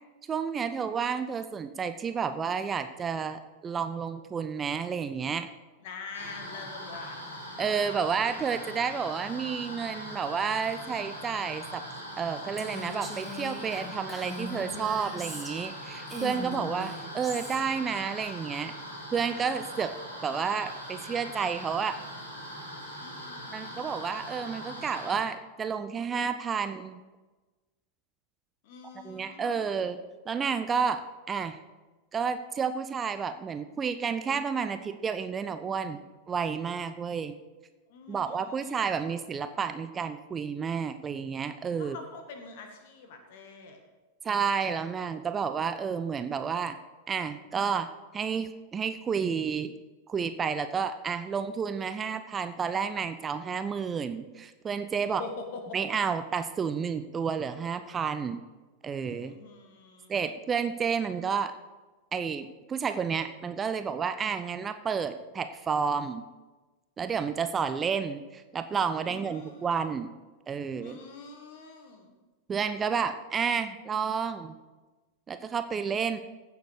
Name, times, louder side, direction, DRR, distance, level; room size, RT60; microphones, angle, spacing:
voice 1, 0.3-5.5 7.6-11.8 12.2-18.7 19.1-19.9 20.2-22.0 23.5-27.0 29.0-30.0 30.3-31.6 32.1-36.0 36.3-37.4 38.1-42.0 44.2-46.8 47.1-47.9 48.1-49.7 50.1-55.2 55.7-58.4 58.8-59.4 60.1-61.5 62.1-66.2 67.0-70.1 70.5-71.0 72.5-74.6 75.3-76.2, right 6 dB, 20° right, 10 dB, 0.6 m, -31 dB
voice 2, 5.8-7.2 22.9-23.9 28.6-29.9 37.9-38.8 41.8-43.8 55.0-55.6 59.3-60.3 69.1-69.7 70.8-72.2, left 4 dB, 50° left, 4 dB, 2.0 m, -45 dB
sound 1, 6.1-25.2, equal, 80° left, 3.6 m, -41 dB
Female speech woman speaking, 12.6-15.8 16.1-17.6, equal, ahead, 2.4 m, -40 dB
15.5 x 7.0 x 4.8 m, 1.2 s
figure-of-eight pair, 90°, 0 cm